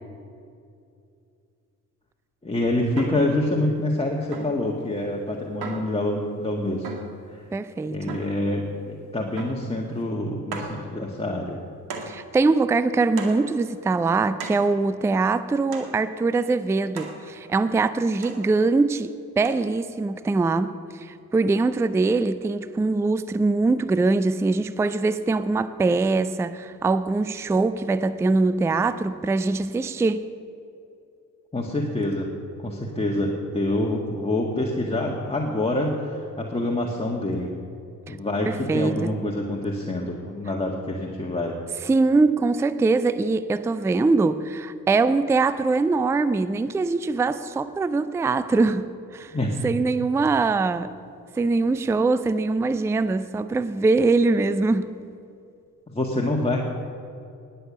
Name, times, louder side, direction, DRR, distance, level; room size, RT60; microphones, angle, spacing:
voice 1, 2.4-6.9 7.3-7.4 7.9-11.6 31.5-32.3 32.6-37.5 38.1-41.6 49.3-49.5 55.9-56.6, left 1 dB, 15° left, 1.7 m, -26 dB
sound 1, 3.0-3.3 4.3-4.7 5.6-6.0 6.8-7.2 8.1-8.4 9.4-9.7 10.0-10.1 10.5-10.8 11.9-12.2 13.2-13.5 14.4-14.7 15.7-16.0 17.0-17.2 18.2-18.5 19.4-19.5, right 3 dB, 50° right, 2.2 m, -36 dB
voice 2, 7.5-8.2 12.1-30.2 38.1-38.2 38.5-39.1 41.8-49.3 49.6-50.9 51.4-55.0, right 3 dB, 5° right, 0.4 m, -23 dB
20.0 x 7.0 x 7.0 m
figure-of-eight pair, 45°, 46 cm